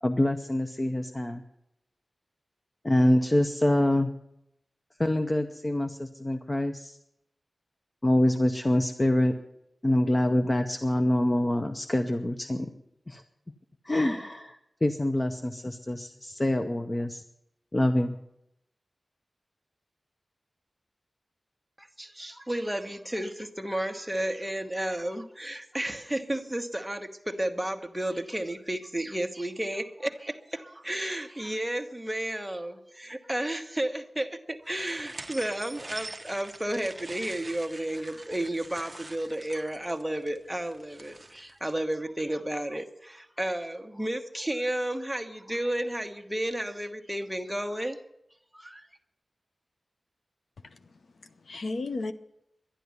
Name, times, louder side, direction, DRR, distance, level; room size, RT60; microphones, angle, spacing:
voice 1, 0.0-1.4 2.8-4.1 5.0-7.0 8.0-9.4 9.8-12.7 13.1-13.2 13.8-17.2 17.7-18.2, left 1 dB, 25° left, 7 dB, 0.7 m, -25 dB
voice 2, 21.8-48.0 48.5-48.9, right 1 dB, 5° right, 5 dB, 1.1 m, -32 dB
sound 1, 34.7-41.5, right 2 dB, 25° right, 0.7 m, -44 dB
voice 3, 50.6-52.1, left 3 dB, 75° left, 9 dB, 0.8 m, -35 dB
11.5 x 11.0 x 9.5 m, 0.81 s
wide cardioid pair, 90°, 0 cm